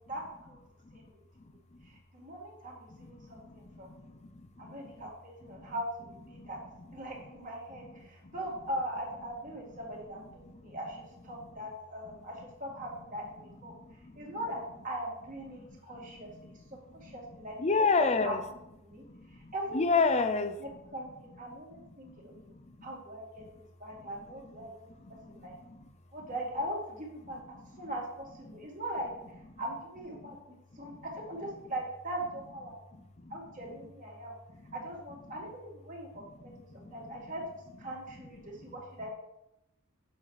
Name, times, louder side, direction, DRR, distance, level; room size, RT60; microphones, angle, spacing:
voice 1, 0.1-0.6 0.9-1.1 1.8-4.0 4.6-6.6 6.9-13.7 14.2-16.3 16.7-17.6 18.0-18.3 18.8-19.0 19.3-20.3 20.6-22.3 22.8-24.7 25.3-25.5 26.1-29.1 29.6-32.8 33.3-34.3 34.7-37.4 37.8-39.1, right 1 dB, 40° right, -2 dB, 2.1 m, -40 dB
voice 2, 3.0-4.9 5.5-5.7 6.3-6.5 7.8-8.4 10.5-10.8 13.7-14.3 15.5-17.2 17.6-18.4 18.9-20.8 21.7-22.9 24.0-24.1 25.0-25.8 27.8-27.9 28.5-28.6 30.2-30.3 30.7-31.1 33.2-33.3 34.6-34.7 35.3-35.4 36.1-37.2 38.4-38.8, left 4 dB, 35° left, 10 dB, 0.6 m, -34 dB
7.2 x 5.8 x 4.8 m, 0.86 s
head